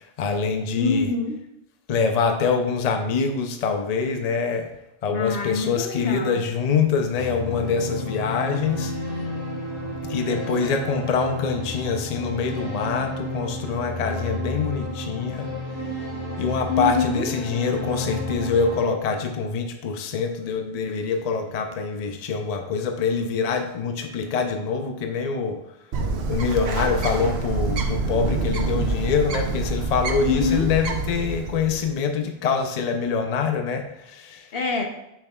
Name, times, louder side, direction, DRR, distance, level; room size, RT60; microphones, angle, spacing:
voice 1, 0.0-1.1 1.9-4.7 5.0-8.9 10.0-15.5 16.4-25.6 26.3-34.5, left 5 dB, 45° left, 5 dB, 0.6 m, -25 dB
voice 2, 0.8-1.4 5.1-6.5 16.7-17.3 30.2-30.7 34.5-34.9, left 4 dB, 75° left, 4 dB, 1.0 m, -25 dB
sound 1, 7.1-18.8, left 1 dB, 90° left, 2.8 m, -31 dB
Bird, 25.9-31.9, right 3 dB, 90° right, 1.0 m, -27 dB
6.9 x 5.8 x 2.3 m, 0.84 s
omnidirectional pair, 1.0 m